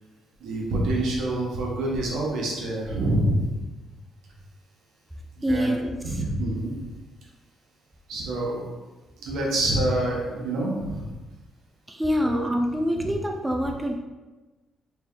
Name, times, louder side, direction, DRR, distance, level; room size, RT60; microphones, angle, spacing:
voice 1, 0.4-3.5 5.3-6.7 8.1-8.6 9.2-11.1 12.2-12.5 12.9-13.1, right 1 dB, 75° right, -3 dB, 1.0 m, -27 dB
voice 2, 5.4-6.0 11.9-13.9, equal, 10° right, 2 dB, 0.4 m, -25 dB
3.3 x 2.7 x 3.7 m, 1.2 s
cardioid pair, 90°, 0 cm